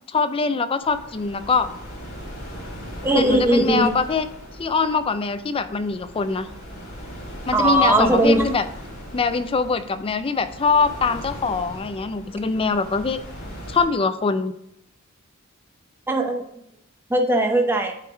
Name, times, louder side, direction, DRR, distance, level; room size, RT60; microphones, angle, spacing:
voice 1, 0.1-1.7 3.1-4.3 4.6-6.5 7.5-8.6 9.1-13.2 13.7-14.5, left 4 dB, 25° left, 11 dB, 0.4 m, -23 dB
sound 1, 0.8-13.8, equal, 45° left, 2.3 m, -38 dB
voice 2, 3.0-3.9 7.5-8.5 16.1-16.4 17.1-17.9, right 1 dB, 10° right, 3 dB, 0.7 m, -19 dB
9.1 x 3.5 x 3.4 m, 0.79 s
head